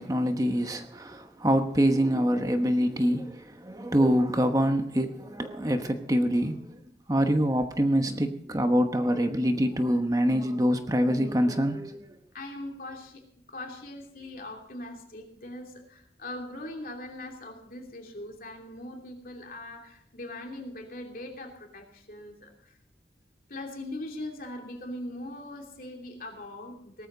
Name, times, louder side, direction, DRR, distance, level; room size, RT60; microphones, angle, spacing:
voice 1, 0.0-6.7 7.1-12.2, equal, 20° right, 1.1 m, -25 dB
voice 2, 12.3-13.2 13.5-22.8 23.5-27.1, left 1 dB, 50° left, 2.8 m, -41 dB
18.5 x 13.5 x 4.0 m
head